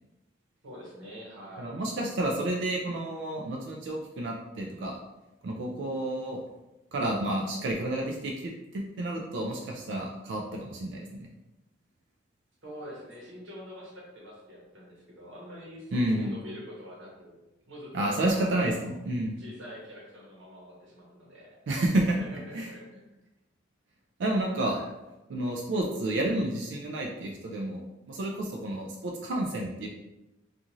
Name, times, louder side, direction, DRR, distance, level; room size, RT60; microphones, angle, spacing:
voice 1, 0.6-1.8 12.6-17.4 17.7-18.6 19.4-21.6 22.1-23.2 24.5-24.9, equal, 85° right, -4 dB, 1.1 m, -45 dB
voice 2, 1.6-5.0 5.4-6.4 6.9-11.3 15.9-16.3 17.9-19.4 21.7-22.2 22.5-22.7 24.2-24.8 25.3-29.9, right 1 dB, 70° right, 0 dB, 0.3 m, -30 dB
2.5 x 2.4 x 2.9 m, 0.97 s
head